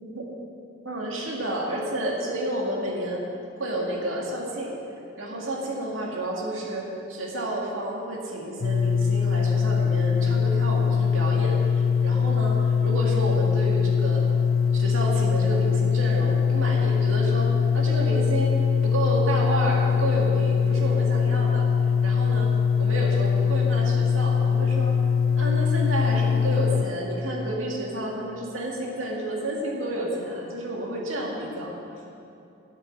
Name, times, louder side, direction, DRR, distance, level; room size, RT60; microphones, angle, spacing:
voice 1, 0.8-3.2 3.6-4.7 5.2-14.2 14.7-18.5 18.8-21.7 22.0-22.5 22.8-24.9 25.4-31.8, right 1 dB, 80° right, -2 dB, 2.1 m, -30 dB
sound 1, 8.6-26.8, left 6 dB, 75° left, 0.5 m, -22 dB
9.6 x 8.6 x 7.8 m, 2.7 s
head